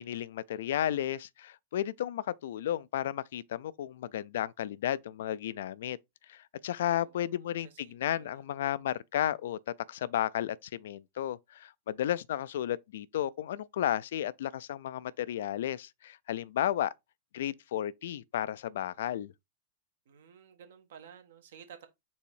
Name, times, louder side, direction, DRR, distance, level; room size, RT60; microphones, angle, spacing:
voice 1, 0.0-6.0 6.3-9.6 9.9-16.9 17.3-19.3, left 11 dB, 75° left, 0.3 m, -33 dB
voice 2, 6.9-8.5 20.0-21.9, right 8 dB, 75° right, 1.2 m, -54 dB
4.1 x 2.7 x 4.5 m
hypercardioid pair, 115°, 0 cm